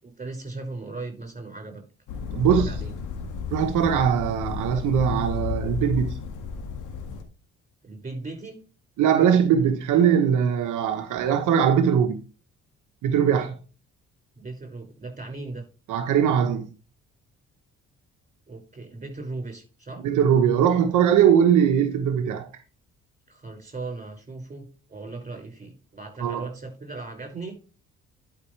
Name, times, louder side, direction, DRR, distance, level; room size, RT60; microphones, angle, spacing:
voice 1, 0.0-1.8 2.5-2.9 7.8-8.6 14.4-15.7 18.5-20.0 23.3-27.7, right 3 dB, 25° right, 5.8 m, -37 dB
sound 1, 2.1-7.2, left 7 dB, 85° left, 1.9 m, -32 dB
voice 2, 2.3-2.7 3.5-6.2 9.0-12.2 13.0-13.6 15.9-16.7 20.0-22.5 26.2-26.4, right 8 dB, 85° right, 1.2 m, -21 dB
12.0 x 5.8 x 3.3 m
cardioid pair, 90°, 30 cm